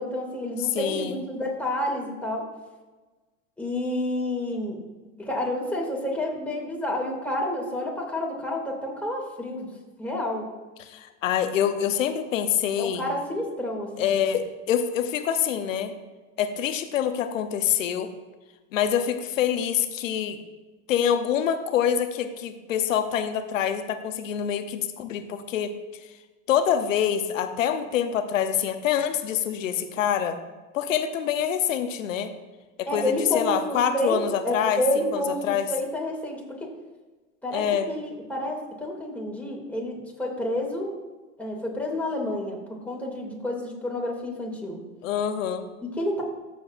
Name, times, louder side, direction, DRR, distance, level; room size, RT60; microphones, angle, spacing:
voice 1, 0.0-2.4 3.6-4.8 5.2-9.7 10.0-10.5 12.8-14.1 32.9-34.2 34.4-36.7 37.4-40.9 41.4-44.8 45.8-46.2, left 1 dB, 5° left, -2 dB, 2.5 m, -29 dB
voice 2, 0.7-1.2 10.8-13.1 14.0-15.9 16.4-18.1 18.7-20.4 20.9-25.7 26.5-30.4 30.7-32.3 32.8-35.7 37.5-37.9 45.0-45.7, left 9 dB, 90° left, 8 dB, 0.9 m, -26 dB
14.5 x 7.0 x 2.6 m, 1.2 s
hypercardioid pair, 100°, 38 cm